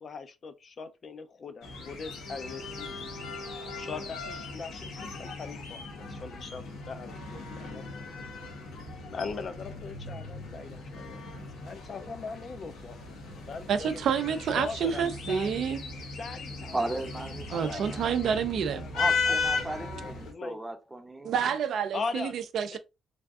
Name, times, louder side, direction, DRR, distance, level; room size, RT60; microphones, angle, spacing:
voice 1, 0.0-3.1 3.8-7.8 9.1-14.0 14.6-15.6 16.2-16.8 17.3-18.9 19.3-19.7 20.0-20.6 21.9-22.4 22.7-22.8, left 4 dB, 50° left, 0.4 m, -40 dB
sound 1, 1.6-20.3, left 4 dB, 85° left, 1.0 m, -37 dB
voice 2, 13.7-15.8 17.5-18.8 21.2-22.8, right 7 dB, 70° right, 0.4 m, -28 dB
voice 3, 16.7-18.1 18.9-21.3, right 2 dB, 15° right, 0.6 m, -36 dB
3.3 x 2.5 x 2.3 m
cardioid pair, 90°, 0 cm